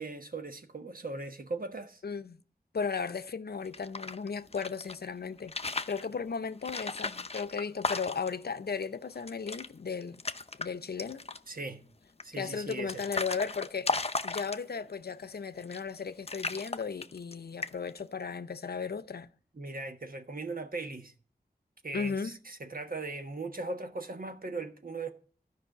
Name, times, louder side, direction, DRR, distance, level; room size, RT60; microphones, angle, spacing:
voice 1, 0.0-2.0 11.5-11.8 12.2-13.1 19.5-21.1 21.8-25.1, right 3 dB, 60° right, 1.3 m, -39 dB
voice 2, 2.0-2.4 2.7-5.5 5.9-10.2 10.6-11.3 12.4-19.3 21.9-22.3, left 5 dB, 80° left, 0.6 m, -35 dB
sound 1, 3.6-5.0 5.4-6.1 6.6-8.4 8.8-8.9 9.2-9.7 10.0-10.7 11.0-11.5 12.2-14.9 15.6-16.0 16.3-17.3 17.6-18.0, left 3 dB, 40° left, 0.6 m, -35 dB
12.5 x 5.5 x 6.6 m
wide cardioid pair, 60°, 16 cm